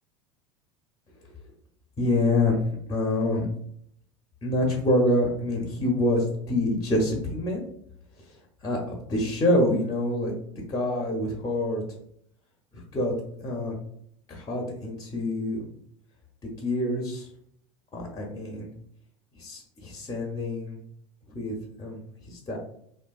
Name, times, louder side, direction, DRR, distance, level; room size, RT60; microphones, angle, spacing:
voice 1, 2.0-2.6 2.9-3.5 4.4-7.6 8.6-8.8 9.1-10.3 10.7-11.8 12.7-13.1 13.4-13.8 14.3-15.7 16.6-17.3 17.9-18.7 19.4-20.8 21.3-22.0 22.3-22.6, left 1 dB, 20° left, 0 dB, 0.6 m, -26 dB
2.8 x 2.2 x 2.3 m, 0.68 s
figure-of-eight pair, 75°, 17 cm